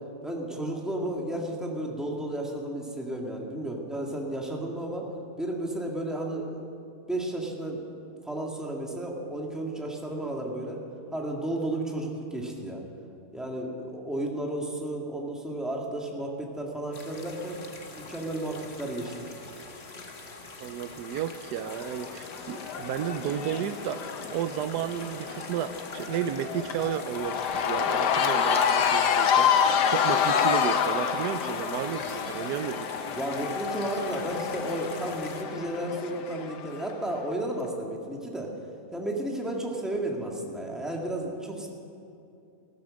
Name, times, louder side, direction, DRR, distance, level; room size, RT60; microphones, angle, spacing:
voice 1, 0.2-5.1 5.4-6.7 7.1-10.8 11.1-12.8 13.3-17.6 18.0-19.2 33.1-38.5 38.9-41.7, right 1 dB, ahead, -1 dB, 1.8 m, -33 dB
sound 1, 16.9-35.4, left 3 dB, 40° left, 1.5 m, -44 dB
voice 2, 20.6-32.9, right 9 dB, 85° right, 12 dB, 1.2 m, -33 dB
Cheering / Crowd, 21.6-36.9, left 7 dB, 90° left, 1.5 m, -28 dB
15.5 x 13.5 x 6.4 m, 2.6 s
omnidirectional pair, 1.7 m